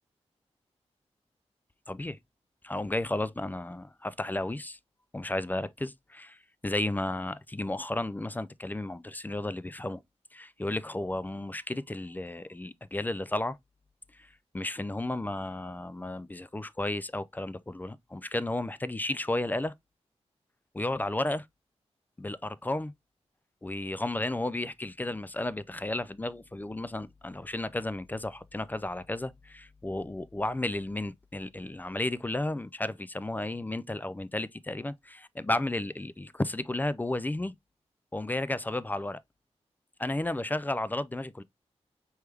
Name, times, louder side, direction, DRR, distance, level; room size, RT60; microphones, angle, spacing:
voice 1, 1.9-2.2 2.6-4.8 5.1-10.0 10.3-13.6 14.2-14.3 14.5-19.7 20.7-21.5 22.2-22.9 23.6-37.5 38.1-39.2 40.0-41.4, left 2 dB, 15° left, 0.4 m, -33 dB
4.6 x 3.4 x 3.2 m
wide cardioid pair, 80°, 12 cm